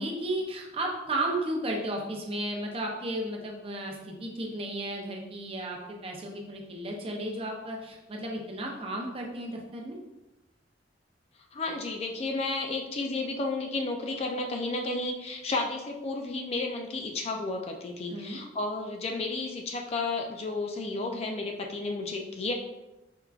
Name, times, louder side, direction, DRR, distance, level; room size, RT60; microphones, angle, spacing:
voice 1, 0.0-10.0 18.1-18.4, right 1 dB, 30° right, 0 dB, 0.6 m, -34 dB
voice 2, 11.5-22.5, left 3 dB, 35° left, 2 dB, 0.4 m, -32 dB
4.5 x 3.6 x 2.4 m, 1.0 s
head